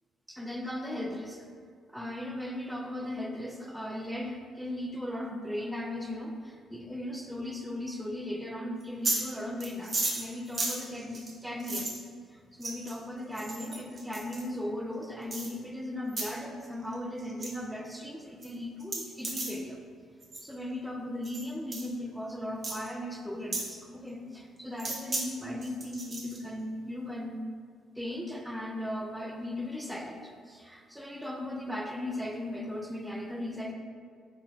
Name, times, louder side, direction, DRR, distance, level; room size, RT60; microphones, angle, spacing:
voice 1, 0.3-1.5 1.9-11.9 12.3-19.8 20.4-27.4 28.0-33.7, left 1 dB, 5° right, 2 dB, 0.5 m, -37 dB
sound 1, 8.8-9.2 9.6-12.0 12.6-13.0 13.3-14.4 15.3-15.5 16.1-16.3 16.6-16.9 17.2-17.5 17.9-18.0 18.4-18.5 18.8-19.6 20.2-20.4 21.2-21.5 21.7-21.9 22.6-22.8 23.5-23.7 24.8-25.2 25.6-26.4, right 2 dB, 35° right, 1.0 m, -34 dB
4.3 x 3.7 x 3.1 m, 2.1 s
cardioid pair, 90°, 0 cm